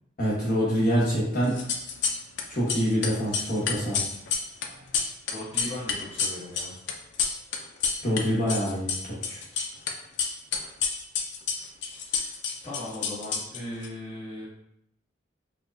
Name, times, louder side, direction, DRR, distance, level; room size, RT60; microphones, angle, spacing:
voice 1, 0.2-1.6 2.5-4.0 8.0-9.4, equal, 45° left, -8 dB, 1.1 m, -26 dB
sound 1, 1.5-2.4 2.7-8.2 8.5-9.9 10.2-13.9, left 6 dB, 70° left, 0.4 m, -29 dB
voice 2, 5.3-6.8 12.0-14.5, left 1 dB, 25° left, -11 dB, 0.9 m, -38 dB
4.5 x 2.1 x 2.6 m, 0.77 s
head